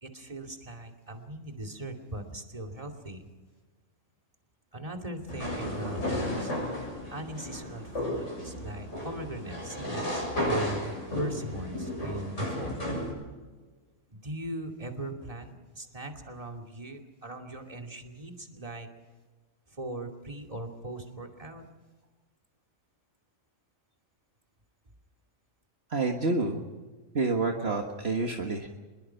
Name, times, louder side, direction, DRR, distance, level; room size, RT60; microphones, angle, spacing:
voice 1, 0.0-3.3 4.7-6.5 7.1-12.8 14.1-18.9 19.7-21.6, right 1 dB, 25° right, 3 dB, 2.6 m, -39 dB
sound 1, 5.3-13.1, left 1 dB, 60° left, 7.9 m, -33 dB
voice 2, 25.9-26.6 27.1-28.7, right 3 dB, 50° right, 2 dB, 1.9 m, -28 dB
25.5 x 22.0 x 5.8 m, 1.3 s
omnidirectional pair, 1.4 m